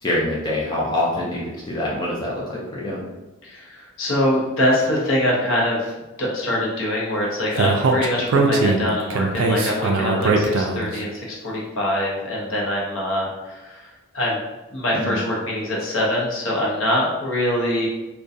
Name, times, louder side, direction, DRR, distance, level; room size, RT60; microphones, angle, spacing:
voice 1, 0.0-3.0 14.9-15.2, left 1 dB, 20° left, -6 dB, 0.4 m, -25 dB
voice 2, 3.4-5.9 6.2-14.4 14.7-17.9, left 1 dB, 60° left, -3 dB, 0.7 m, -24 dB
Speech, 7.6-11.0, right 3 dB, 65° right, 0.3 m, -20 dB
2.3 x 2.2 x 2.6 m, 1.1 s
head